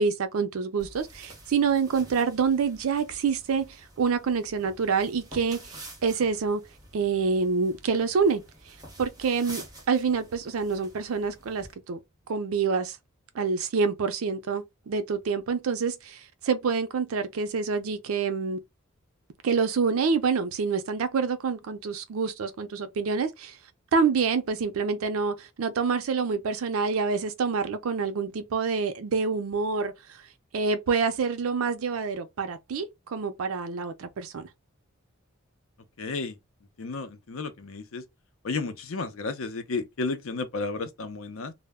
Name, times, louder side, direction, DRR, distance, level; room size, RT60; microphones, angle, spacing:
voice 1, 0.0-6.6 6.9-8.4 8.7-12.0 12.3-13.0 13.3-18.6 19.4-23.6 23.9-30.2 30.5-34.5, right 5 dB, 80° right, 0.4 m, -27 dB
sound 1, 0.8-11.7, right 1 dB, 20° right, 0.9 m, -48 dB
voice 2, 36.0-36.4 36.8-38.0 38.4-41.5, left 3 dB, 70° left, 0.5 m, -32 dB
2.1 x 2.1 x 3.4 m
head